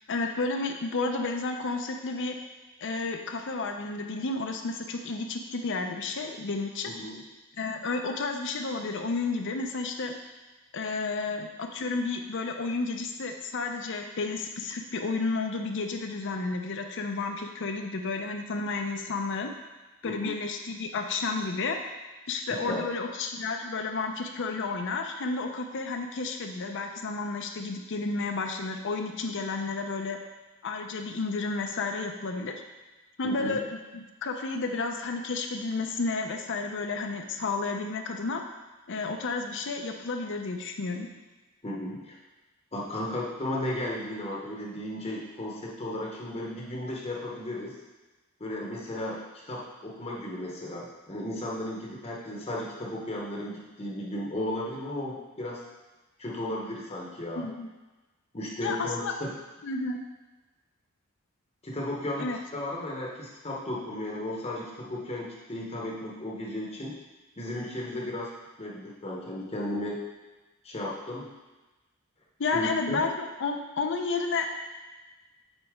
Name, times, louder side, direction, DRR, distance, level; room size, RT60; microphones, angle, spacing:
voice 1, 0.1-2.4 2.8-6.9 7.6-10.1 10.7-19.5 20.0-21.8 22.3-30.2 30.6-32.5 33.2-38.4 38.9-41.1 57.3-57.7 58.6-59.1 59.6-60.0 62.2-62.4 72.4-74.5, left 3 dB, 55° left, 4 dB, 0.6 m, -31 dB
voice 2, 6.9-7.2 20.0-20.3 22.7-22.8 33.2-33.6 41.6-42.2 42.7-47.8 48.4-55.6 56.2-57.5 58.3-59.3 61.6-67.0 67.4-68.3 68.6-70.0 70.6-71.3 72.5-73.1, left 1 dB, 30° left, -3 dB, 0.9 m, -35 dB
8.1 x 4.1 x 3.6 m, 1.2 s
head